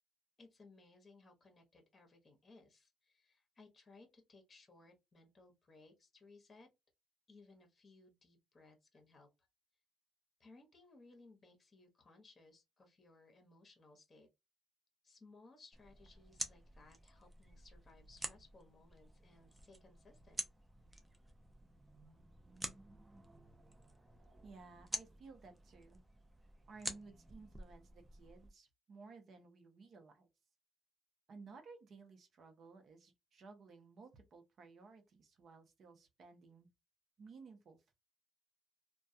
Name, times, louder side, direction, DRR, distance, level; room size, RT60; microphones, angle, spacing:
voice 1, 0.4-6.7 7.3-9.3 10.4-14.3 15.0-20.4, left 3 dB, 30° left, 0.9 m, -63 dB
sound 1, 15.7-28.5, right 1 dB, 15° right, 0.6 m, -49 dB
voice 2, 24.4-26.0 26.7-30.3 31.3-36.7 37.2-38.0, right 4 dB, 60° right, 0.7 m, -57 dB
2.2 x 2.2 x 2.6 m
cardioid pair, 90°, 0 cm